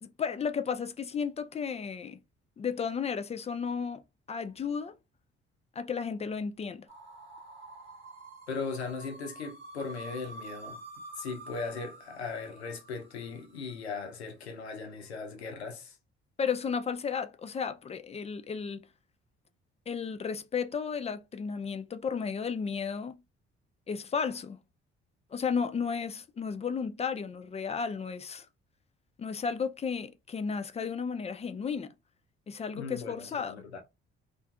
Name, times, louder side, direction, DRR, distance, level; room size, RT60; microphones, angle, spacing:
voice 1, 0.0-2.2 2.6-4.0 4.3-4.9 5.8-6.9 16.4-18.9 19.9-23.2 23.9-24.6 25.3-28.5 29.2-31.9 32.5-33.6, left 6 dB, 20° left, 0.4 m, -33 dB
sound 1, 6.9-13.8, right 2 dB, 85° right, 1.1 m, -48 dB
voice 2, 8.5-10.8 11.2-16.0 32.7-33.8, left 4 dB, 90° left, 0.6 m, -38 dB
2.5 x 2.3 x 2.4 m
hypercardioid pair, 50°, 31 cm